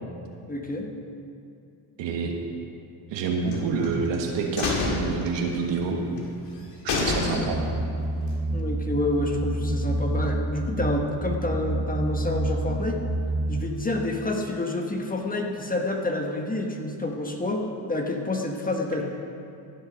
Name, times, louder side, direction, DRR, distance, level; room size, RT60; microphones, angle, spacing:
voice 1, 0.5-0.9 8.5-13.0 13.5-19.0, left 2 dB, 20° left, 2 dB, 1.3 m, -28 dB
voice 2, 2.0-2.3 3.1-6.0 7.0-7.6, right 4 dB, 75° right, 1 dB, 1.7 m, -27 dB
sound 1, 3.5-4.2 4.6-5.9 6.2-6.3 6.6-6.7 6.9-7.8 8.1-8.2, left 3 dB, 70° left, 2.1 m, -28 dB
sound 2, 7.4-13.6, right 2 dB, 15° right, 1.4 m, -28 dB
15.5 x 6.4 x 5.2 m, 2.6 s
cardioid pair, 85°, 44 cm